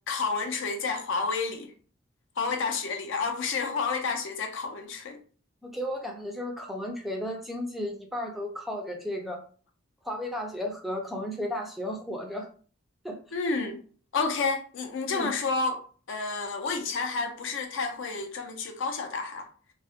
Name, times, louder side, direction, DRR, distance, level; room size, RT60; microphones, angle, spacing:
voice 1, 0.1-1.7 2.4-5.2 13.3-13.8 14.1-15.8 16.1-19.5, left 4 dB, 65° left, 0.4 m, -30 dB
voice 2, 5.6-9.4 10.0-12.5 13.0-13.2 15.1-15.3, left 1 dB, ahead, 0.3 m, -34 dB
2.2 x 2.0 x 2.7 m
head